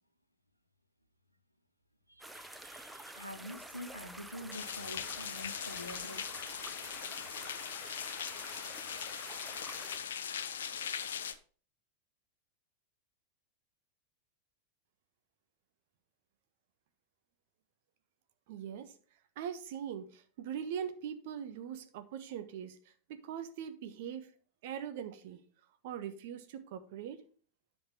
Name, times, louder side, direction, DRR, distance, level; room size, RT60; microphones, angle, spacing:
voice 1, 2.1-6.3, left 1 dB, 90° left, 8 dB, 1.1 m, -47 dB
sound 1, 2.2-10.0, right 1 dB, 5° right, 0.8 m, -49 dB
sound 2, 4.5-11.3, left 8 dB, 65° left, 0.7 m, -40 dB
voice 2, 18.5-18.9 19.4-22.8 23.1-24.3 24.6-25.4 25.8-27.2, right 8 dB, 50° right, 9 dB, 1.3 m, -41 dB
10.0 x 5.3 x 5.3 m, 0.42 s
figure-of-eight pair, 90°, 0 cm